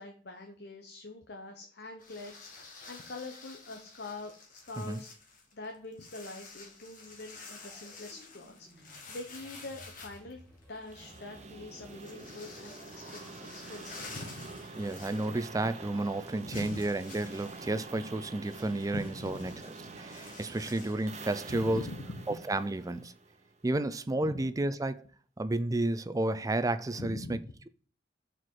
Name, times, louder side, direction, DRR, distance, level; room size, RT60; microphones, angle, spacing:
voice 1, 0.0-5.1 5.5-10.4 10.7-14.6 16.4-16.8 18.9-19.6 19.8-19.9 21.5-22.4 24.2-24.4 27.0-27.5, left 2 dB, 65° left, 1.0 m, -44 dB
sound 1, 2.0-15.8 16.1-16.2 16.5-21.6, left 4 dB, 50° left, 1.7 m, -51 dB
sound 2, 6.9-17.0 17.6-17.7, equal, 5° left, 2.8 m, -59 dB
sound 3, 10.9-23.8, right 3 dB, 40° right, 0.9 m, -47 dB
voice 2, 14.8-19.5 20.0-21.8 22.3-23.1 23.6-25.0 25.4-27.4, right 2 dB, 20° right, 0.4 m, -31 dB
6.1 x 4.6 x 4.7 m
head